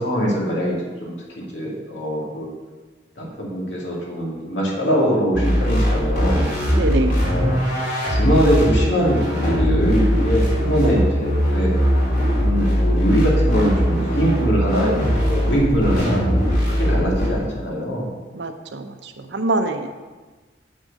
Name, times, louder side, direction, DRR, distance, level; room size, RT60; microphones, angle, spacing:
voice 1, 0.0-2.5 3.2-6.5 7.2-7.5 8.1-11.7 12.3-16.4 16.7-18.1, equal, 80° left, -3 dB, 2.3 m, -22 dB
sound 1, 5.3-17.3, equal, 50° left, 3.0 m, -20 dB
voice 2, 6.7-7.2 18.3-19.9, right 2 dB, 75° right, 7 dB, 0.7 m, -24 dB
7.5 x 6.3 x 5.3 m, 1.3 s
head